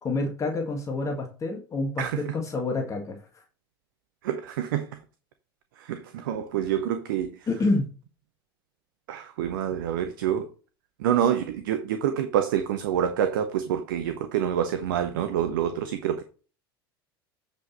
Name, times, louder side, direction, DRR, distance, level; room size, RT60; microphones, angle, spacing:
voice 1, 0.0-3.2 7.5-7.9, left 3 dB, 25° left, 1.7 m, -28 dB
voice 2, 2.0-2.3 4.2-5.0 5.8-7.5 9.1-10.5 11.0-16.2, right 9 dB, 60° right, 0.8 m, -27 dB
7.9 x 5.2 x 4.2 m
figure-of-eight pair, 75°, 13 cm